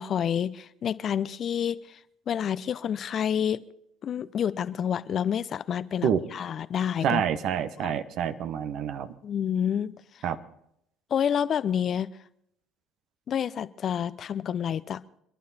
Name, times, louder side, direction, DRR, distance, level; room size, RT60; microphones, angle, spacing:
voice 1, 0.0-2.0 2.3-3.6 4.0-7.2 7.8-7.9 9.2-10.3 11.1-12.1 13.3-15.0, left 8 dB, 50° left, 16 dB, 0.7 m, -28 dB
voice 2, 7.0-9.1 10.2-10.4, right 8 dB, 60° right, 11 dB, 1.2 m, -27 dB
27.0 x 11.5 x 4.3 m, 0.74 s
hypercardioid pair, 60°, 0 cm